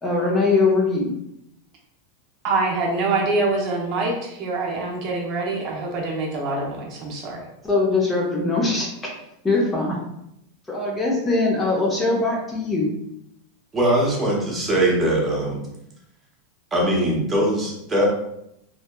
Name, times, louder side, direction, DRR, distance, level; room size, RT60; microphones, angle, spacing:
voice 1, 0.0-1.1 7.6-8.9 9.4-10.0 10.7-12.9, left 3 dB, 15° left, -3 dB, 0.5 m, -21 dB
voice 2, 2.4-7.4, right 3 dB, 45° right, -2 dB, 0.6 m, -25 dB
voice 3, 13.7-15.6 16.7-18.0, right 1 dB, 15° right, -3 dB, 0.8 m, -21 dB
2.7 x 2.1 x 2.2 m, 0.80 s
supercardioid pair, 125°, 0 cm